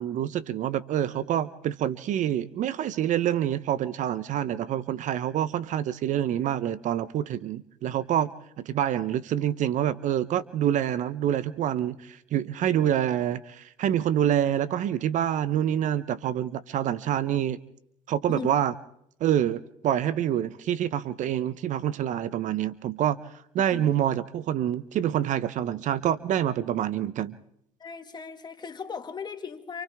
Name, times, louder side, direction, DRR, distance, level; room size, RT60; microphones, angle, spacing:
voice 1, 0.0-8.3 8.6-17.6 18.1-18.7 19.2-23.2 23.5-27.4, right 10 dB, 55° right, 17 dB, 0.8 m, -27 dB
voice 2, 27.8-29.8, left 6 dB, 30° left, 5 dB, 2.1 m, -37 dB
28.0 x 28.0 x 3.6 m, 0.74 s
supercardioid pair, 90°, 15 cm